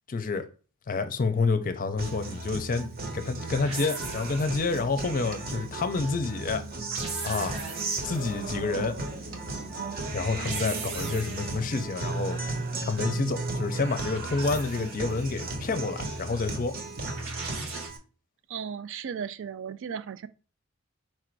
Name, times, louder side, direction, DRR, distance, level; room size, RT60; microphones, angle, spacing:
voice 1, 0.1-0.4 0.9-2.9 3.1-6.6 7.2-7.5 8.0-8.9 10.1-12.4 12.9-16.7, left 4 dB, 40° left, 0.5 m, -28 dB
Guitar, 2.0-18.0, right 2 dB, 45° right, 0.9 m, -35 dB
sound 1, 3.6-4.9 6.7-8.3 10.1-11.7 13.5-15.2 17.0-17.9, right 4 dB, 80° right, 1.4 m, -39 dB
sound 2, 8.3-17.3, equal, 10° right, 0.8 m, -50 dB
voice 2, 18.5-20.3, right 7 dB, 60° right, 0.4 m, -35 dB
4.4 x 2.5 x 4.5 m
head